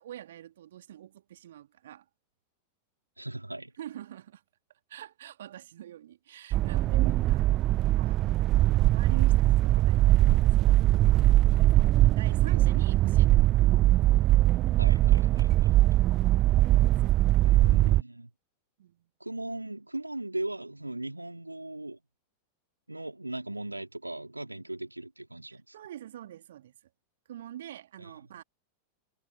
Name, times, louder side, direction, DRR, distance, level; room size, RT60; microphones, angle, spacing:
voice 1, 0.0-2.0 3.8-4.4 4.9-7.5 7.9-8.2 8.5-10.8 11.7-13.7 17.1-17.5 18.8-19.1 25.7-26.8 27.3-28.4, right 11 dB, 60° right, 3.3 m, -45 dB
voice 2, 3.2-3.7 14.8-15.8 17.4-18.3 19.2-22.0 22.9-25.7 28.0-28.1, right 1 dB, 85° right, 4.3 m, -38 dB
sound 1, 6.5-18.0, right 15 dB, 35° right, 0.8 m, -22 dB
figure-of-eight pair, 90°, 0 cm